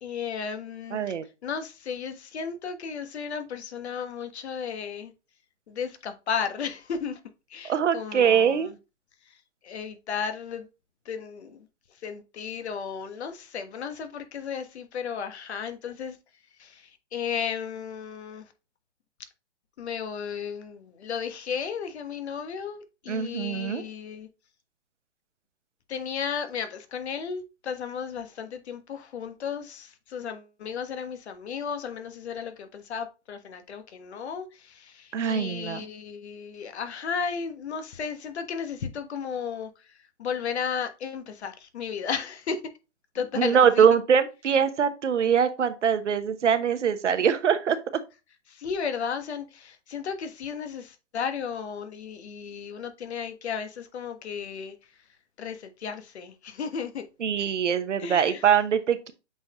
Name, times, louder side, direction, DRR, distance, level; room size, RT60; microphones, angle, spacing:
voice 1, 0.0-1.1 1.4-5.1 5.7-7.2 7.5-8.8 9.6-10.7 11.0-11.7 12.0-16.2 16.6-18.5 19.8-24.3 25.9-42.6 43.1-43.9 48.5-54.8 55.4-57.0 58.0-58.4, left 6 dB, 65° left, 1.5 m, -34 dB
voice 2, 0.9-1.2 7.6-8.7 23.1-23.8 35.1-35.8 43.4-48.0 57.2-59.1, right 7 dB, 75° right, 1.1 m, -23 dB
7.7 x 4.3 x 3.0 m
hypercardioid pair, 130°, 36 cm